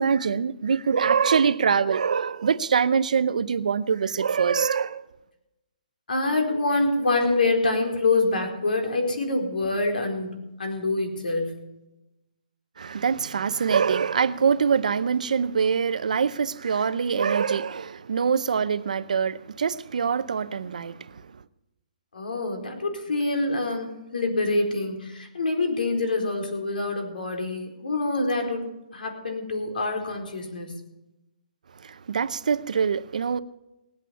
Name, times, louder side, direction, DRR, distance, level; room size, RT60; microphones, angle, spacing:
voice 1, 0.0-5.0 12.8-21.3 31.8-33.4, right 6 dB, 60° right, 0.7 m, -24 dB
voice 2, 6.1-11.6 22.1-28.6 28.9-30.8, left 2 dB, 85° left, 4.4 m, -26 dB
18.5 x 8.5 x 7.1 m
hypercardioid pair, 175°, 5 cm